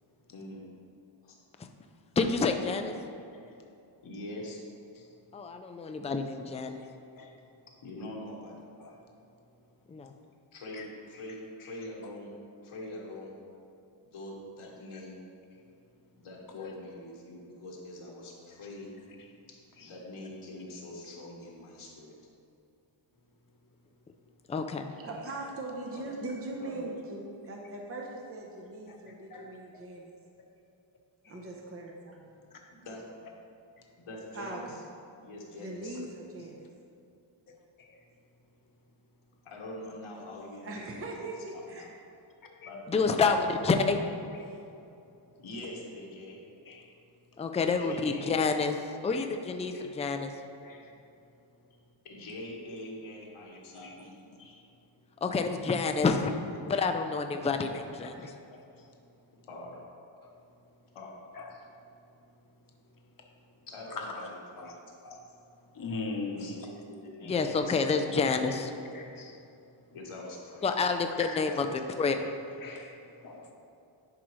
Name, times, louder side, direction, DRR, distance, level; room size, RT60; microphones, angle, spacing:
voice 1, 0.3-0.7 1.2-1.3 4.0-4.6 7.8-8.7 10.5-12.3 12.6-13.4 14.0-15.2 16.2-19.0 19.8-22.2 25.9-26.2 26.6-26.9 32.7-33.3 34.0-34.8 35.2-36.0 39.4-41.3 41.7-41.9 42.6-43.3 45.4-46.4 47.8-48.4 52.0-54.1 59.5-59.8 60.9-61.1 63.7-64.8 65.6-65.7 66.3-68.1 68.5-68.7 69.9-70.6 71.1-71.5, left 1 dB, 90° left, -3 dB, 1.5 m, -44 dB
voice 2, 2.2-2.9 5.3-6.8 9.9-10.1 24.5-24.9 42.9-44.0 47.4-50.3 55.2-56.3 56.7-58.3 67.2-68.7 70.6-72.2, left 4 dB, 15° left, 6 dB, 0.3 m, -28 dB
voice 3, 6.8-7.4 8.8-9.0 10.7-10.8 11.1-11.2 11.6-11.8 14.6-15.0 16.6-16.7 19.2-19.3 19.8-20.0 25.3-25.4 28.9-29.8 31.2-31.4 33.8-33.9 37.8-38.0 41.5-41.7 42.6-42.7 44.3-44.7 46.7-46.9 49.1-49.3 49.7-49.8 50.6-50.9 53.7-54.1 54.4-54.6 55.8-56.1 56.7-56.9 58.0-59.0 60.2-60.4 61.3-61.8 63.2-63.3 63.9-64.3 64.6-64.8 65.0-65.4 65.7-66.7 68.5-68.6 68.9-69.4 70.6-71.6 72.1-72.3 72.6-73.5, left 3 dB, 45° left, 1 dB, 0.9 m, -43 dB
voice 4, 25.0-30.2 31.3-32.3 34.3-34.8 35.6-36.7 40.6-41.9, right 2 dB, 30° right, 0 dB, 0.8 m, -40 dB
11.0 x 5.0 x 3.1 m, 2.7 s
wide cardioid pair, 120°, 49 cm